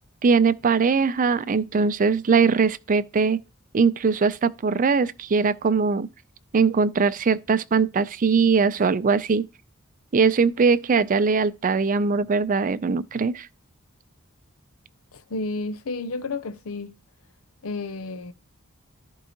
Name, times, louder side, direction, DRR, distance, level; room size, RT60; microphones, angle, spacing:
voice 1, 0.2-3.4 3.7-6.1 6.5-9.5 10.1-13.5, right 5 dB, 40° right, 0.4 m, -21 dB
voice 2, 15.3-16.9 17.6-18.3, left 3 dB, 85° left, 0.6 m, -31 dB
13.5 x 4.6 x 2.9 m
head